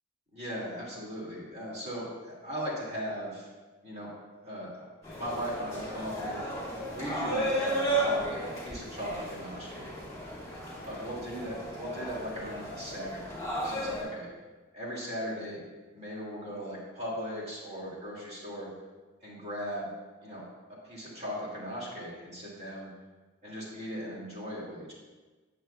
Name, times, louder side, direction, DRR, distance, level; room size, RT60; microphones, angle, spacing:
voice 1, 0.3-3.5 3.8-4.1 4.4-4.9 5.1-6.5 6.9-9.9 10.9-14.3 14.7-15.6 15.9-18.7 19.2-19.9 20.2-20.4 20.8-22.9 23.4-24.9, equal, 35° right, -5 dB, 2.1 m, -38 dB
sound 1, 5.0-14.0, right 1 dB, 15° left, 2.4 m, -34 dB
8.9 x 7.0 x 2.2 m, 1.3 s
head